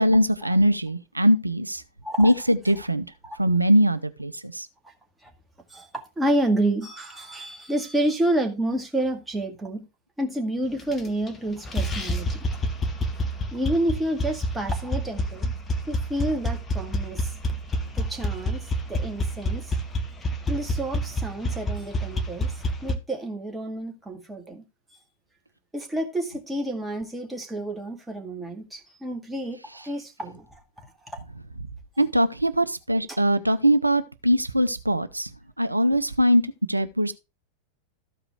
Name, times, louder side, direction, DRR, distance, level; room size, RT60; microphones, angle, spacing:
voice 1, 0.0-1.8 2.2-3.1 3.4-4.7 32.0-35.3 35.6-36.4 36.7-37.1, equal, 85° right, 0.6 m, -21 dB
voice 2, 5.7-9.9 10.2-12.4 13.5-15.5 15.9-17.3 17.9-19.8 20.5-24.6 25.7-31.2 33.1-33.2, right 1 dB, 10° right, 2.1 m, -29 dB
sound 1, 10.8-11.4 11.6-23.0, equal, 20° left, 1.3 m, -28 dB
13.5 x 4.9 x 4.6 m
figure-of-eight pair, 90°, 0 cm